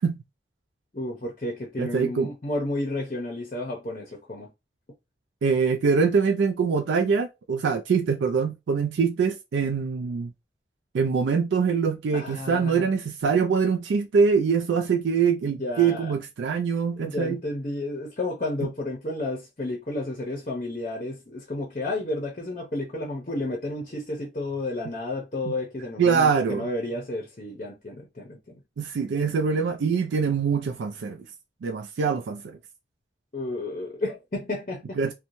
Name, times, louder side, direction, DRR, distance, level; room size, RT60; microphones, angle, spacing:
voice 1, 0.9-4.5 12.1-12.9 15.4-16.1 17.0-28.6 33.3-35.0, left 2 dB, 40° left, 0.6 m, -32 dB
voice 2, 1.8-2.3 5.4-10.3 10.9-17.4 18.6-18.7 25.5-25.6 26.0-26.7 28.8-31.2 31.6-32.6 35.0-35.1, right 5 dB, 80° right, 0.3 m, -24 dB
3.0 x 2.2 x 2.6 m
head